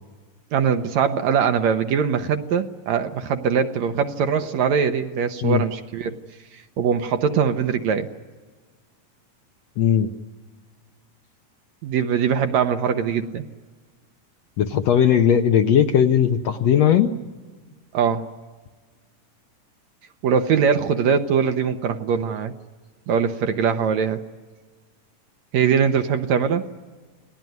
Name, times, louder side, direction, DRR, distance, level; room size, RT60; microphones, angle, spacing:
voice 1, 0.5-6.2 6.5-8.1 11.8-13.5 17.9-18.3 20.2-22.5 23.1-24.2 25.5-26.7, right 7 dB, 70° right, 7 dB, 2.0 m, -22 dB
voice 2, 9.8-10.1 14.6-17.1, left 9 dB, 70° left, 6 dB, 1.8 m, -18 dB
29.0 x 19.5 x 9.4 m, 1.4 s
omnidirectional pair, 3.8 m